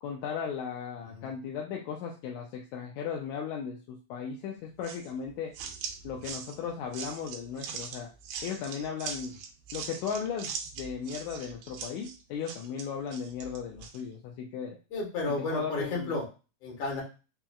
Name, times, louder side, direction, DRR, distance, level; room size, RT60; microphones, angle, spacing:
voice 1, 0.0-5.5 6.0-8.1 8.4-9.4 9.7-14.8 15.3-16.1, left 7 dB, 80° left, 0 dB, 1.7 m, -36 dB
sound 1, 4.8-14.0, right 6 dB, 80° right, 2.0 m, -41 dB
voice 2, 14.9-16.3 16.6-17.0, left 2 dB, 55° left, -1 dB, 2.3 m, -32 dB
5.1 x 2.9 x 2.3 m, 0.32 s
omnidirectional pair, 3.8 m